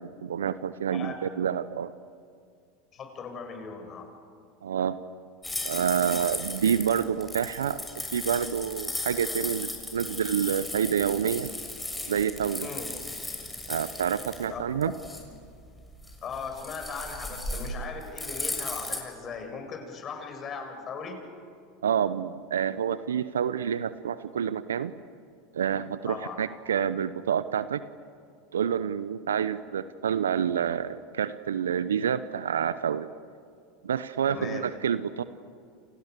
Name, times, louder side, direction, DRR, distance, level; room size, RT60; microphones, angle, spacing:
voice 1, 0.0-1.9 4.6-5.0 5.6-11.5 12.1-12.7 13.7-14.9 21.8-24.9 25.5-27.8 28.5-33.1 33.8-35.2, right 8 dB, 80° right, 14 dB, 0.8 m, -28 dB
voice 2, 2.9-4.1 12.6-12.9 14.5-14.6 16.2-21.2 26.1-26.4 34.3-34.7, left 5 dB, 35° left, 5 dB, 7.1 m, -38 dB
sound 1, 5.4-19.0, left 2 dB, 10° left, 6.8 m, -36 dB
29.5 x 29.5 x 6.8 m, 2.2 s
hypercardioid pair, 85°, 0 cm